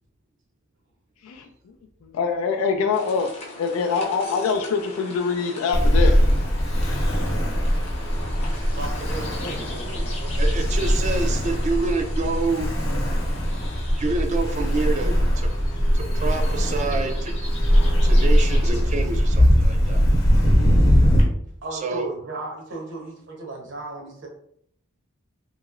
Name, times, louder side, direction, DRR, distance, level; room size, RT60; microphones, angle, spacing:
voice 1, 2.1-3.3 3.6-6.2 9.4-9.5, left 5 dB, 85° left, 3 dB, 0.3 m, -24 dB
sound 1, 2.9-18.8, left 1 dB, 30° left, 0.6 m, -39 dB
Ocean, 5.7-21.2, equal, 70° left, 0.8 m, -20 dB
voice 2, 8.7-11.1 21.6-24.3, right 2 dB, 60° right, 0 dB, 0.8 m, -36 dB
voice 3, 10.4-12.7 14.0-15.5 15.9-17.4 18.0-20.0 21.7-22.1, right 3 dB, 35° right, 5 dB, 0.3 m, -27 dB
2.9 x 2.8 x 2.4 m, 0.67 s
head